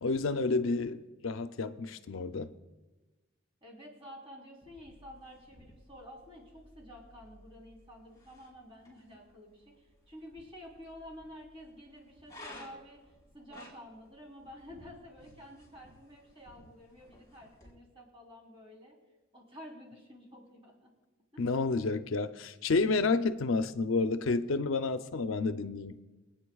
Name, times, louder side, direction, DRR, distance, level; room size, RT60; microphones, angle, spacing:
voice 1, 0.0-2.5 21.4-25.9, left 3 dB, 70° left, 0.5 m, -30 dB
voice 2, 3.6-19.0 19.3-20.9 21.3-21.6, equal, 25° right, 3.4 m, -51 dB
sound 1, 4.6-17.7, left 1 dB, 15° left, 4.1 m, -56 dB
25.5 x 9.0 x 2.3 m
head